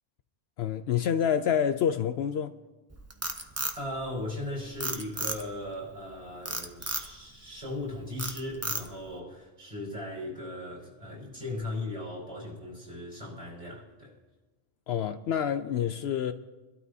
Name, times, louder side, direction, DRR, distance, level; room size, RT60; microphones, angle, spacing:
voice 1, 0.6-2.5 14.9-16.3, left 8 dB, 70° left, 0.8 m, -27 dB
Frog, 2.9-4.4 4.8-5.7 6.5-7.1 7.6-7.9 8.2-9.1, right 2 dB, 15° right, 0.8 m, -33 dB
voice 2, 3.7-14.2, left 1 dB, 30° right, 5.0 m, -38 dB
25.0 x 12.5 x 2.7 m
omnidirectional pair, 1.2 m